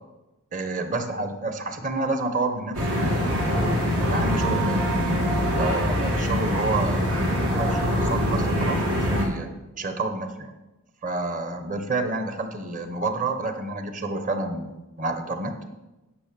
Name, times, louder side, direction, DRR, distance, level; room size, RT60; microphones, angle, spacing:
voice 1, 0.5-3.7 4.0-4.9 5.6-7.1 7.5-9.5 9.8-10.5 11.0-15.5, right 3 dB, 35° right, 7 dB, 1.0 m, -29 dB
sound 1, 2.7-9.3, equal, 85° right, 2.9 m, -24 dB
9.7 x 6.0 x 6.8 m, 1.0 s
head